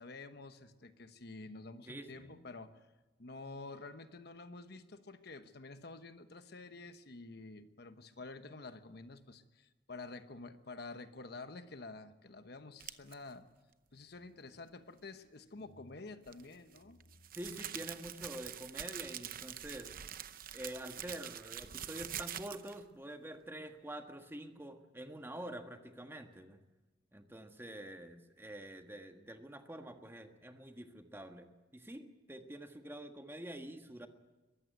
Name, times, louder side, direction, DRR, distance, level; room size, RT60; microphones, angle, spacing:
voice 1, 0.0-2.8 3.2-13.5 13.9-17.2, left 3 dB, 60° left, 10 dB, 1.1 m, -49 dB
voice 2, 1.9-2.4 17.3-19.9 20.5-26.6 27.1-34.1, right 1 dB, 15° right, 6 dB, 1.4 m, -47 dB
sound 1, 12.8-13.1 16.2-22.8, right 10 dB, 50° right, 0.8 m, -45 dB
22.5 x 14.0 x 9.2 m, 1.2 s
head